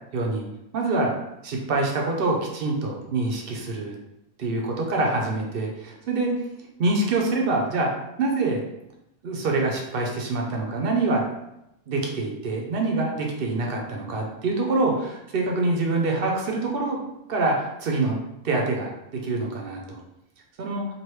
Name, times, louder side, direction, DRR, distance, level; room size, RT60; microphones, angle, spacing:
voice 1, 0.1-0.4 0.7-1.1 1.4-4.0 4.4-6.3 6.8-7.9 8.2-8.6 9.2-11.2 11.9-17.0 17.3-18.2 18.4-20.0 20.6-20.8, right 2 dB, 60° right, 1 dB, 0.7 m, -25 dB
3.0 x 2.6 x 3.1 m, 0.86 s
omnidirectional pair, 1.2 m